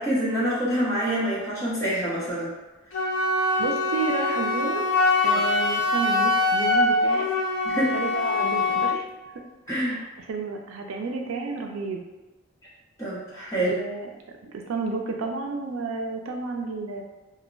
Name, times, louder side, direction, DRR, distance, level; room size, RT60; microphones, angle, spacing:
voice 1, 0.0-2.5 3.4-3.6 5.3-5.5 7.6-8.0 9.7-10.0 13.0-13.7, right 1 dB, 15° left, -9 dB, 0.8 m, -26 dB
Wind instrument woodwind instrument, 2.9-9.0, left 2 dB, 65° left, 0.5 m, -23 dB
voice 2, 3.6-4.8 5.2-7.3 7.9-9.1 9.3-12.0 13.5-17.0, right 4 dB, 80° right, 3 dB, 0.4 m, -31 dB
2.1 x 2.0 x 3.7 m, 1.1 s
head